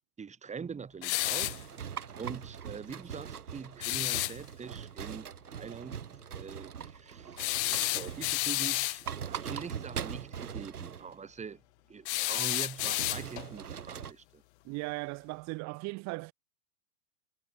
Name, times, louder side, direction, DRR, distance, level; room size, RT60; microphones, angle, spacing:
voice 1, 0.2-1.6 2.2-7.5 7.8-11.6 11.9-14.4, right 6 dB, 15° right, 4.3 m, -44 dB
sound 1, 1.0-1.6 3.8-4.4 7.4-9.0 12.1-13.5, left 23 dB, 50° left, 1.3 m, -31 dB
sound 2, 1.2-8.5 8.9-11.2 12.8-14.1, right 8 dB, 85° right, 6.1 m, -41 dB
voice 2, 14.6-16.3, right 27 dB, 40° right, 1.6 m, -37 dB
hypercardioid pair, 115°, 44 cm